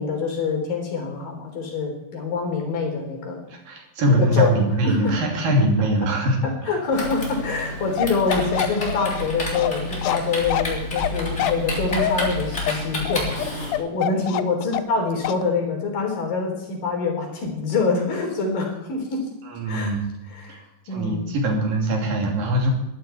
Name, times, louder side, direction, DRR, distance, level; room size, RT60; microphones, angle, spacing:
voice 1, 0.0-3.4 4.2-4.6 4.8-5.1 5.8-5.9 6.7-19.2 19.7-19.9 20.3-21.2, left 4 dB, 70° left, 1 dB, 5.4 m, -25 dB
voice 2, 3.5-6.7 19.5-20.0 20.5-20.6 20.9-22.7, right 1 dB, 70° right, 1 dB, 4.5 m, -22 dB
Typing, 6.9-13.8, left 1 dB, 20° left, 4.0 m, -29 dB
Bark, 8.0-15.0 15.2-15.4, left 12 dB, 90° left, 1.5 m, -26 dB
22.0 x 12.5 x 4.6 m, 0.92 s
omnidirectional pair, 4.1 m